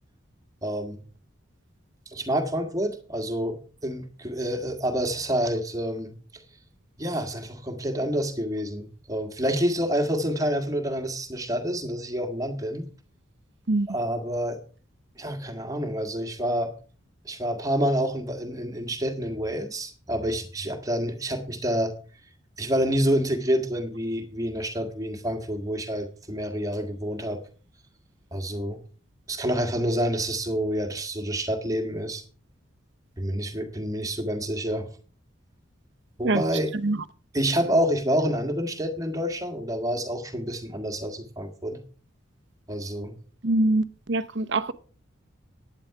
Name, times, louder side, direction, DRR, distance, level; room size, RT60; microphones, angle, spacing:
voice 1, 0.6-1.0 2.1-3.6 3.8-6.1 7.0-12.9 13.9-14.6 15.2-16.7 17.3-21.9 22.6-27.4 28.3-28.8 29.3-32.2 33.2-34.9 36.2-36.7 37.3-41.8 42.7-43.2, equal, 15° right, 1.7 m, -28 dB
voice 2, 43.4-44.7, right 2 dB, 60° right, 0.8 m, -24 dB
11.0 x 9.4 x 4.8 m
head